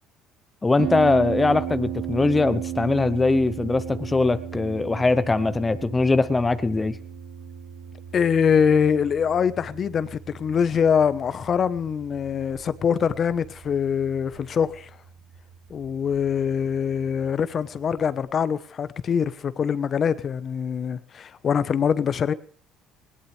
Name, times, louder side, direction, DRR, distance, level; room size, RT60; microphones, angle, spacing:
voice 1, 0.6-7.0, left 3 dB, 20° left, 0.9 m, -21 dB
Harp, 0.8-18.2, right 9 dB, 75° right, 3.1 m, -36 dB
voice 2, 8.1-14.9 15.7-22.3, left 7 dB, 45° left, 1.1 m, -23 dB
20.0 x 18.0 x 3.4 m
supercardioid pair, 85°, 0 cm